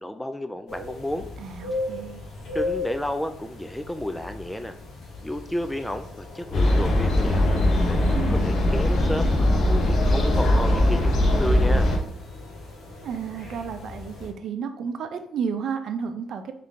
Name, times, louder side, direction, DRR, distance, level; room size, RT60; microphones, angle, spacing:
voice 1, 0.0-1.3 2.5-4.7 5.2-7.6 7.9-9.3 9.7-11.9, left 1 dB, 5° left, 7 dB, 0.4 m, -32 dB
sound 1, 0.7-14.3, left 2 dB, 90° left, 1.3 m, -38 dB
voice 2, 1.4-2.2 8.1-8.4 13.0-16.5, right 6 dB, 70° right, 7 dB, 0.5 m, -32 dB
sound 2, 6.5-12.0, left 1 dB, 70° left, 0.9 m, -20 dB
3.7 x 3.2 x 3.6 m, 0.66 s
cardioid pair, 90°, 0 cm